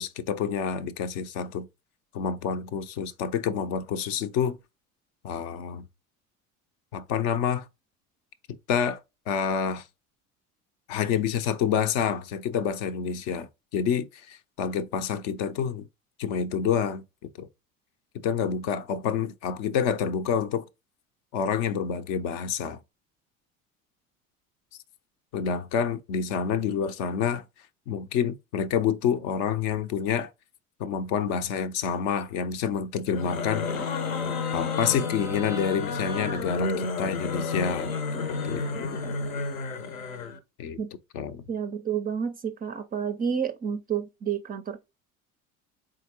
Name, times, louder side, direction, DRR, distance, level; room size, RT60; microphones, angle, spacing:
voice 1, 0.0-1.7 2.1-4.6 5.2-5.8 6.9-7.7 8.7-9.0 9.3-9.9 10.9-15.9 16.2-17.0 17.4-17.5 18.2-20.7 21.3-22.8 25.3-27.4 27.9-30.3 30.8-33.7 34.5-37.9 38.4-38.9 40.6-40.8 41.1-41.4, left 7 dB, 55° left, 0.6 m, -28 dB
sound 1, 33.1-40.4, left 4 dB, 75° left, 0.9 m, -31 dB
voice 2, 41.5-44.8, right 7 dB, 20° right, 0.4 m, -30 dB
4.4 x 3.7 x 2.8 m
figure-of-eight pair, 65°, 41 cm